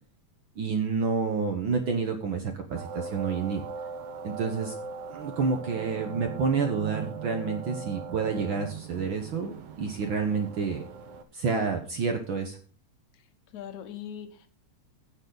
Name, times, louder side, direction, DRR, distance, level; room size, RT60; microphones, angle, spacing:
voice 1, 0.6-3.6 4.2-4.7 5.1-10.8 11.3-12.6, right 5 dB, 60° right, 4 dB, 1.4 m, -29 dB
sound 1, 2.8-11.2, right 5 dB, 80° right, 2.5 m, -39 dB
voice 2, 13.1-14.5, left 9 dB, 80° left, 8 dB, 2.5 m, -41 dB
16.5 x 6.7 x 3.9 m, 0.40 s
omnidirectional pair, 3.3 m